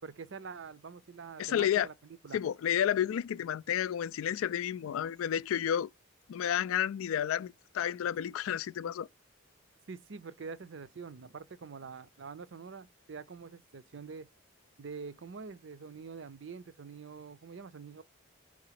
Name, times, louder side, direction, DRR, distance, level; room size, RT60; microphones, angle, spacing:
voice 1, 0.0-2.4 9.9-14.3 14.8-18.0, right 5 dB, 60° right, 0.5 m, -45 dB
voice 2, 1.4-1.9 2.3-5.9 6.3-9.1, left 10 dB, 85° left, 0.3 m, -31 dB
4.9 x 3.8 x 5.7 m
head